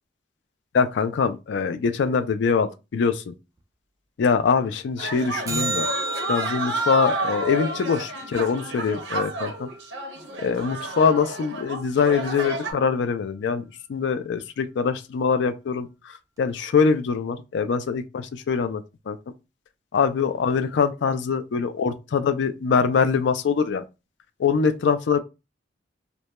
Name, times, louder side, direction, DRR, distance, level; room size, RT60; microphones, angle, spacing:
voice 1, 0.7-3.3 4.2-5.9 6.3-9.7 10.4-13.6 13.9-19.2 19.9-23.8 24.4-25.2, left 5 dB, 70° left, 0.3 m, -23 dB
sound 1, 5.0-12.7, right 2 dB, 75° right, 0.6 m, -31 dB
sound 2, 5.5-9.9 16.5-16.6, right 1 dB, 15° right, 0.3 m, -33 dB
2.2 x 2.1 x 2.8 m
head